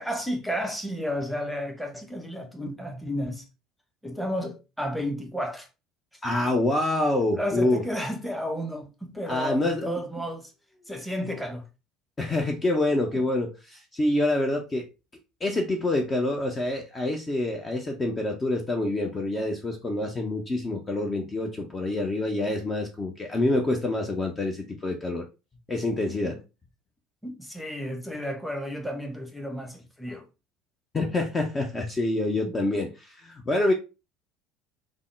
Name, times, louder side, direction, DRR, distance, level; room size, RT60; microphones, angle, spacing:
voice 1, 0.0-3.4 4.0-5.7 7.3-10.5 10.9-11.6 13.1-13.2 27.2-30.2, equal, ahead, 0.9 m, -32 dB
voice 2, 6.2-7.8 9.2-10.0 12.2-14.9 15.4-25.2 25.7-26.4 30.9-33.7, left 2 dB, 25° left, 0.5 m, -26 dB
3.5 x 2.1 x 3.2 m
figure-of-eight pair, 65°, 0 cm